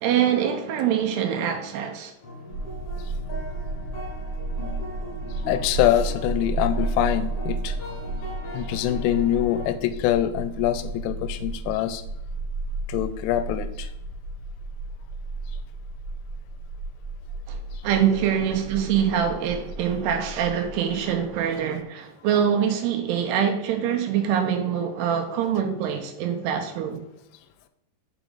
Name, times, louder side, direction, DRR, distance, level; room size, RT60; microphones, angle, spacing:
voice 1, 0.0-2.1 17.5-17.6 17.8-27.0, right 8 dB, 80° right, 2.6 m, -24 dB
sound 1, 2.2-9.7, left 1 dB, 60° left, 1.6 m, -39 dB
sound 2, 2.5-21.4, right 2 dB, 25° left, 1.7 m, -33 dB
voice 2, 5.5-7.8 8.5-12.0 12.9-13.9, left 12 dB, 85° left, 2.7 m, -24 dB
6.0 x 5.0 x 3.6 m
omnidirectional pair, 4.9 m